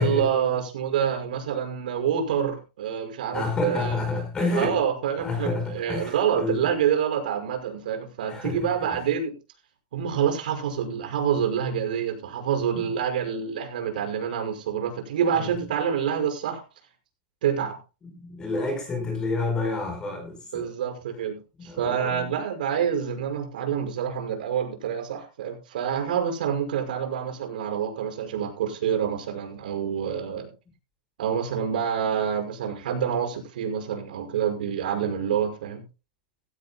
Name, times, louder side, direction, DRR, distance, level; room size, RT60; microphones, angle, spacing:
voice 1, 0.0-4.0 4.5-9.3 9.9-16.6 17.4-17.8 20.5-30.5 31.2-35.8, right 8 dB, 80° right, 5.9 m, -27 dB
voice 2, 3.3-4.8 5.2-6.6 8.3-8.6 15.4-15.6 18.1-20.7 21.6-22.2, left 3 dB, 15° left, 4.8 m, -29 dB
17.0 x 16.0 x 2.3 m
supercardioid pair, 155°, 5 cm